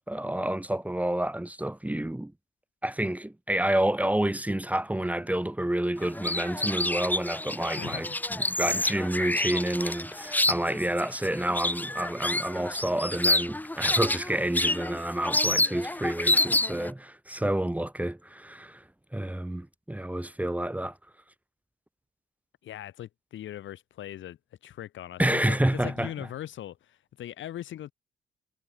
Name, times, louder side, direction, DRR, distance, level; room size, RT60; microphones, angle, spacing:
voice 1, 0.0-2.3 2.8-18.8 19.1-20.9 25.2-26.1, right 1 dB, 5° right, 2.1 m, -29 dB
sound 1, 6.0-16.9, left 1 dB, 10° left, 1.4 m, -28 dB
voice 2, 7.7-8.2 8.6-8.9 22.6-24.4 24.6-27.9, left 12 dB, 75° left, 4.5 m, -40 dB
cardioid pair, 90°, 20 cm